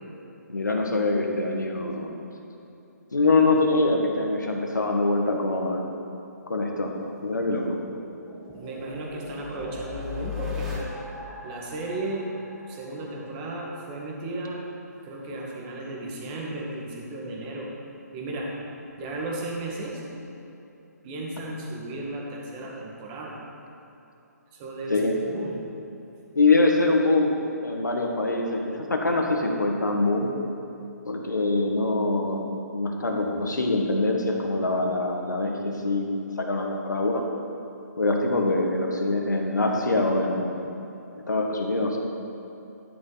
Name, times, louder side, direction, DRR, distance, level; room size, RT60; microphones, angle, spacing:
voice 1, 0.5-2.1 3.1-5.9 6.5-6.9 7.2-7.8 24.9-25.2 26.3-27.4 27.6-30.3 31.0-37.2 38.0-40.7 41.3-42.0, left 2 dB, 85° left, 1 dB, 1.6 m, -24 dB
sound 1, 6.8-13.6, left 5 dB, 5° right, 1.4 m, -38 dB
voice 2, 8.5-10.9 11.4-12.3 12.7-14.6 15.0-17.7 18.1-18.5 19.0-20.0 21.0-23.4 24.5-25.6, right 2 dB, 25° right, -2 dB, 1.9 m, -34 dB
11.5 x 10.5 x 4.1 m, 2.8 s
figure-of-eight pair, 145°, 10 cm